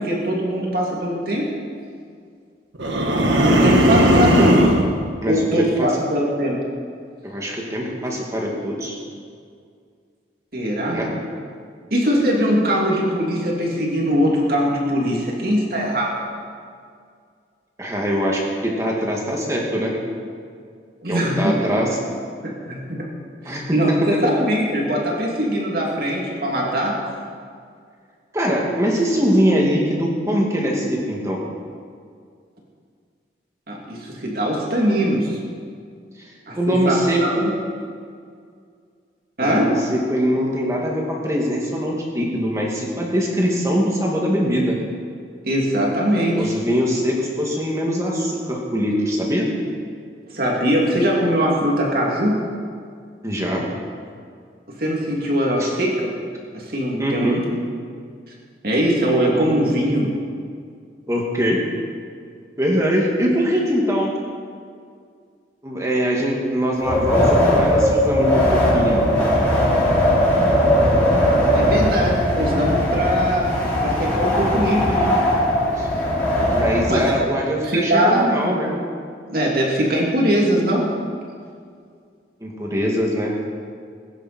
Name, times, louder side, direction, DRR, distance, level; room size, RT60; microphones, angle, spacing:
voice 1, 0.0-1.4 3.5-4.7 5.2-6.6 10.5-11.0 11.9-16.1 21.0-21.9 22.4-23.1 23.5-27.0 33.7-35.4 36.5-37.5 39.4-39.7 45.4-46.5 50.3-52.4 54.8-56.1 56.5-57.5 58.6-60.1 71.5-73.5 73.8-75.2 76.9-77.1 77.6-78.2 79.3-80.9, equal, 55° right, -2 dB, 2.9 m, -21 dB
sound 1, 2.8-4.9, equal, 85° right, 1.6 m, -16 dB
voice 2, 5.2-5.9 7.2-9.0 10.9-11.1 17.8-19.9 21.1-21.9 23.4-24.0 28.3-31.4 36.2-36.3 36.6-37.4 39.4-44.8 46.4-49.5 53.2-53.6 55.6-55.7 57.0-57.4 61.1-61.6 62.6-64.1 65.6-69.0 75.7-75.9 76.5-78.7 82.4-83.3, equal, 15° right, -2 dB, 2.2 m, -22 dB
Wind, 66.8-77.1, equal, 10° left, 4.7 m, -19 dB
21.0 x 10.0 x 4.4 m, 2.2 s
head